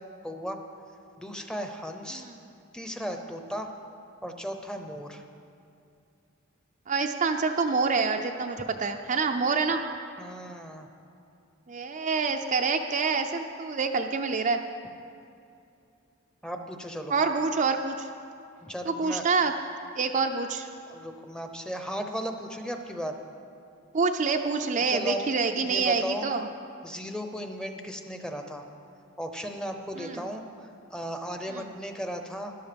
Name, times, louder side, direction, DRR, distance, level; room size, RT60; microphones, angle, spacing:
voice 1, 0.2-0.6 1.2-2.2 2.7-3.7 4.2-5.2 10.2-10.9 16.4-17.1 18.6-19.3 20.9-23.2 24.9-25.2 25.6-26.3 26.8-28.7 29.2-32.6, equal, 5° left, 5 dB, 0.8 m, -36 dB
voice 2, 6.9-9.8 11.7-14.6 17.1-18.1 18.9-19.5 20.0-20.7 23.9-26.5 30.0-30.3 31.5-31.6, right 4 dB, 35° right, 5 dB, 0.5 m, -27 dB
13.5 x 11.5 x 5.2 m, 2.6 s
head